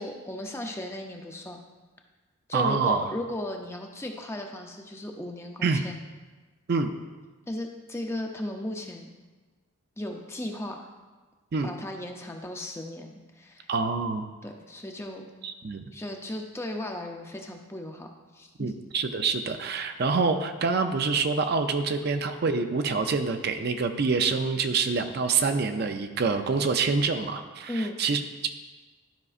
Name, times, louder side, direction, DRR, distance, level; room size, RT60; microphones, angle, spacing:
voice 1, 0.0-1.6 2.5-6.0 7.5-9.1 10.0-10.9 11.6-13.7 14.4-15.2 15.9-18.1 18.3-18.7 27.7-28.0, left 1 dB, 10° left, 3 dB, 0.5 m, -36 dB
voice 2, 2.5-3.1 5.6-5.8 6.7-6.9 11.5-11.7 13.7-14.3 15.4-15.8 18.6-28.5, right 4 dB, 50° right, 7 dB, 0.4 m, -26 dB
12.0 x 5.3 x 2.4 m, 1.3 s
head